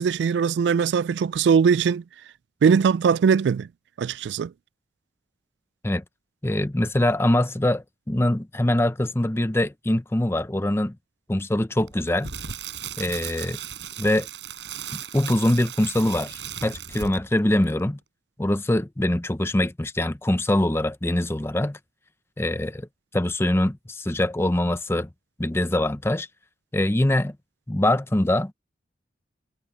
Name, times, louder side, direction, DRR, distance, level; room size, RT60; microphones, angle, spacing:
voice 1, 0.0-2.0 2.6-3.7 4.0-4.5, right 6 dB, 70° right, 0.3 m, -20 dB
voice 2, 6.4-11.0 11.3-12.3 13.0-13.6 14.0-14.3 14.9-18.0 18.4-21.8 22.4-22.9 23.1-25.1 25.4-26.3 26.7-27.4 27.7-28.5, left 1 dB, 15° left, 0.6 m, -23 dB
Crackle, 11.9-17.4 17.6-17.8, right 8 dB, 90° right, 4.4 m, -36 dB
head